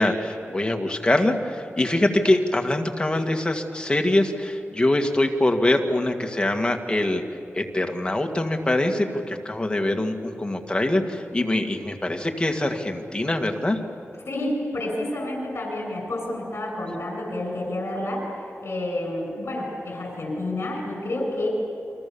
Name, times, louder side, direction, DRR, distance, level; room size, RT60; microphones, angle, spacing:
voice 1, 0.0-7.2 7.5-13.8, left 1 dB, 20° left, 4 dB, 2.1 m, -23 dB
voice 2, 14.3-21.5, left 1 dB, 60° left, 1 dB, 8.0 m, -29 dB
29.5 x 24.5 x 7.1 m, 2.6 s
wide cardioid pair, 100°, 5 cm